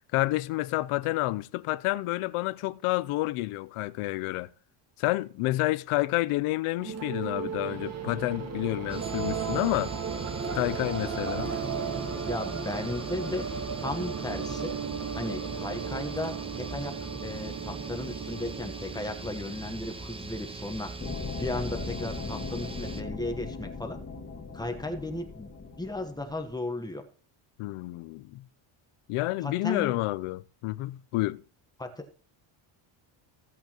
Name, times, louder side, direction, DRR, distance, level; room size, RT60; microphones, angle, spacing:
voice 1, 0.1-4.5 5.0-9.9 10.5-11.6 27.6-28.5 29.1-31.4, left 18 dB, 80° left, 0.7 m, -29 dB
sound 1, 6.8-19.7, right 6 dB, 30° right, 1.2 m, -35 dB
sound 2, 8.9-23.0, right 3 dB, 10° right, 0.6 m, -41 dB
voice 2, 12.1-13.5 13.8-14.8 15.1-16.9 17.2-20.9 21.4-24.0 24.5-27.0 29.4-29.9 31.8-32.2, left 2 dB, 10° left, 1.1 m, -35 dB
sound 3, 21.0-26.6, left 4 dB, 25° left, 1.7 m, -38 dB
16.0 x 8.0 x 3.0 m
cardioid pair, 155°, 50 cm